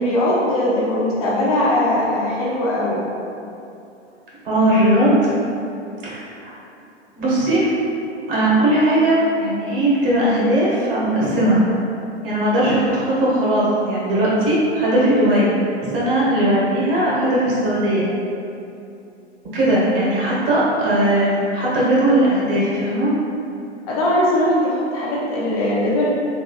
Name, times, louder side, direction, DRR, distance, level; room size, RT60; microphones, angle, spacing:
voice 1, 0.0-3.0 23.9-26.1, left 1 dB, 30° left, -6 dB, 0.5 m, -20 dB
voice 2, 4.4-5.3 6.0-6.5 7.2-7.7 8.3-11.6 12.2-15.5 15.9-18.1 19.5-23.1, right 1 dB, 50° right, -7 dB, 1.3 m, -18 dB
3.7 x 3.0 x 2.3 m, 2.6 s
figure-of-eight pair, 105°, 34 cm